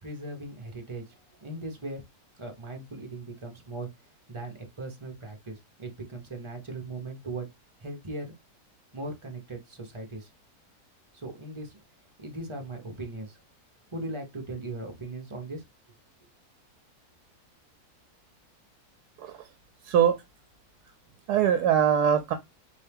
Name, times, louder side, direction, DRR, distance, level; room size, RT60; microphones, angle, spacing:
voice 1, 0.0-2.0 2.4-3.9 4.3-7.5 7.8-8.4 8.9-10.3 11.1-11.8 12.2-13.4 13.9-15.6, right 2 dB, 25° right, 0.8 m, -38 dB
voice 2, 19.8-20.2 21.3-22.3, right 9 dB, 85° right, 1.1 m, -22 dB
4.4 x 2.9 x 3.4 m
omnidirectional pair, 1.6 m